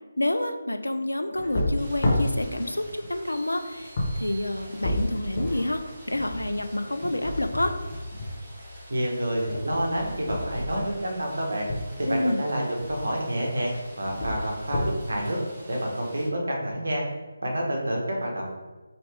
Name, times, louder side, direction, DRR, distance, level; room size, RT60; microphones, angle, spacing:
voice 1, 0.2-7.8 12.1-12.4, left 1 dB, 75° left, 8 dB, 0.3 m, -28 dB
sound 1, 1.3-11.9 12.7-13.2 13.4-14.9, left 1 dB, 35° left, 0.8 m, -31 dB
Rain, 1.8-16.3, right 1 dB, 20° right, 1.0 m, -48 dB
sound 2, 3.3-5.2, right 4 dB, 5° left, 1.0 m, -51 dB
voice 2, 8.9-11.7 12.0-14.8 15.1-15.4 15.7-17.0 17.4-18.5, right 1 dB, 60° right, -1 dB, 0.9 m, -28 dB
3.0 x 2.8 x 3.2 m, 1.3 s
figure-of-eight pair, 150°, 0 cm